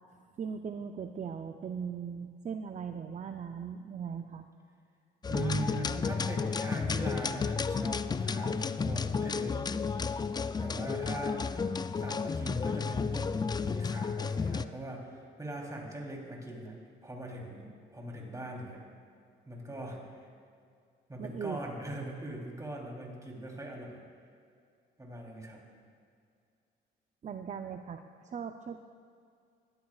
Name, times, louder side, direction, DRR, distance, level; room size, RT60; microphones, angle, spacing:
voice 1, 0.4-4.5 21.2-21.6 27.2-28.8, right 6 dB, 40° right, 7 dB, 0.6 m, -39 dB
sound 1, 5.2-14.7, left 5 dB, 20° left, 0.3 m, -32 dB
voice 2, 5.3-9.6 10.6-11.5 11.9-13.3 13.6-16.7 17.0-18.8 19.4-20.3 21.1-24.0 25.0-25.6, right 1 dB, 15° right, -1 dB, 3.3 m, -41 dB
19.5 x 13.5 x 2.4 m, 2.3 s
cardioid pair, 90°, 20 cm